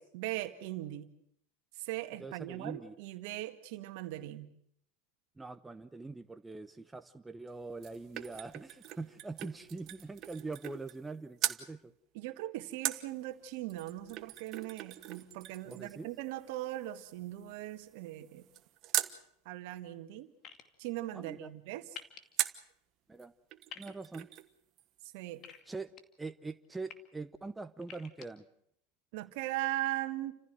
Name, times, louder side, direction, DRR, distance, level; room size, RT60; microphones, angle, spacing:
voice 1, 0.1-1.1 1.8-4.5 12.1-18.4 19.5-20.3 20.8-22.0 25.1-25.4 29.1-30.3, right 15 dB, 65° right, 9 dB, 1.9 m, -39 dB
voice 2, 2.2-2.9 5.4-11.9 15.7-16.1 21.1-21.5 23.1-23.3 23.8-24.3 25.7-25.9 26.2-28.4, right 3 dB, 10° right, 10 dB, 0.9 m, -43 dB
sound 1, 7.5-11.1 11.4-11.7 12.8-19.2 22.4-22.7 23.2-23.3 23.5-24.5 24.8-24.9, right 14 dB, 45° right, 1.2 m, -40 dB
sound 2, 20.4-20.6 21.9-22.2 23.7-23.9 25.4-26.0 26.6-26.9 27.8-28.3, left 8 dB, 40° left, 2.4 m, -47 dB
29.5 x 15.0 x 7.7 m, 0.71 s
hypercardioid pair, 100°, 0 cm